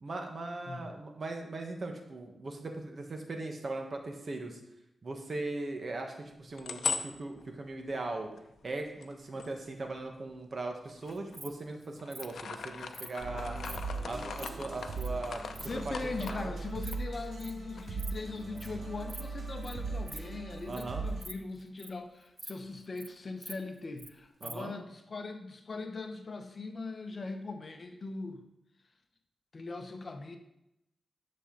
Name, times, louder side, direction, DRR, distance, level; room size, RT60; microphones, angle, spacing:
voice 1, 0.0-4.6 5.0-8.3 8.6-13.6 14.0-16.6 20.7-21.0 24.4-24.7, right 2 dB, 50° right, 3 dB, 1.4 m, -39 dB
sound 1, 6.3-10.3 10.9-11.7 12.0-17.5 17.8-17.9 18.2-19.4, left 6 dB, 80° left, 0.6 m, -40 dB
Insect, 11.1-11.5 12.1-12.3 12.9-13.1 13.6-13.8 14.1-14.5 15.0-15.1 15.3-15.7 16.2-16.3 16.7-17.0 17.2-17.5 17.9-18.1 18.4-18.7 19.1-19.3 19.6-19.7 20.1-20.2 20.6-20.8 21.1-22.0 22.4-22.5 22.8-23.1 23.4-24.1 24.4-24.5, right 1 dB, 15° right, 0.6 m, -45 dB
sound 2, 13.2-21.2, right 3 dB, 75° right, 2.3 m, -39 dB
voice 2, 15.6-28.4 29.5-30.4, left 3 dB, 45° left, 6 dB, 1.0 m, -40 dB
10.0 x 6.8 x 4.0 m, 0.85 s
wide cardioid pair, 115°, 0 cm